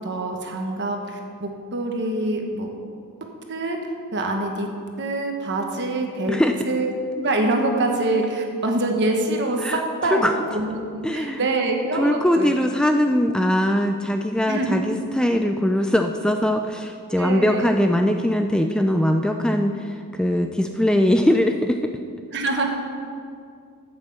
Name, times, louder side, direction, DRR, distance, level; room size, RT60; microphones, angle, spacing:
voice 1, 0.0-2.7 3.5-3.8 4.1-4.7 5.0-10.8 11.1-12.5 14.5-14.8 17.2-17.7 22.3-22.7, right 2 dB, 55° right, 2 dB, 1.4 m, -25 dB
voice 2, 11.0-11.4 11.9-21.9, equal, 5° left, 5 dB, 0.3 m, -21 dB
9.2 x 8.2 x 7.0 m, 2.3 s
head